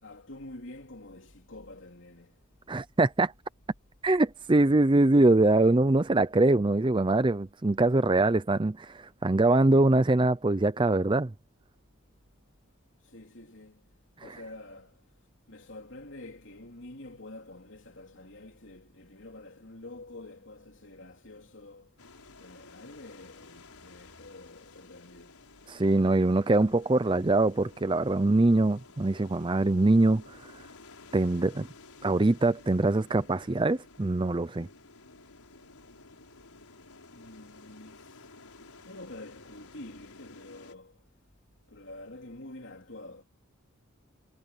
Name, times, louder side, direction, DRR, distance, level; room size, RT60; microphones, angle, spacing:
voice 1, 0.0-2.4 13.0-13.9 14.2-15.0 15.5-22.0 22.4-25.4 37.1-38.2 38.9-41.0 41.7-43.2, left 2 dB, 55° left, 3.5 m, -47 dB
voice 2, 2.7-3.3 4.0-11.3 14.2-14.4 25.7-30.4 31.1-31.7 32.0-34.7, right 2 dB, 20° right, 0.5 m, -23 dB
sound 1, 22.0-40.7, left 3 dB, 90° left, 5.7 m, -53 dB
head